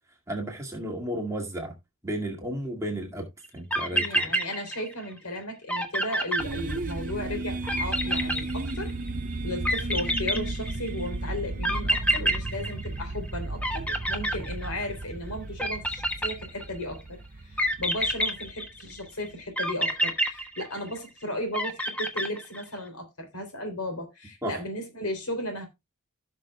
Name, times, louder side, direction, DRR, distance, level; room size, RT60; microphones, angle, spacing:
voice 1, 0.3-1.7 2.0-3.3 3.5-4.3 24.4-24.6, right 1 dB, 15° right, 2.1 m, -33 dB
sound 1, 3.4-3.5 3.7-5.1 5.4-5.5 5.7-7.1 7.7-9.1 9.6-11.0 11.6-13.3 13.6-15.0 15.6-16.8 17.6-19.0 19.6-21.1 21.5-22.8, right 1 dB, 5° left, 1.0 m, -28 dB
voice 2, 3.9-8.9 9.4-25.7, left 1 dB, 85° left, 3.3 m, -35 dB
sound 2, 6.4-19.3, right 2 dB, 35° right, 0.6 m, -35 dB
16.0 x 6.3 x 2.3 m
head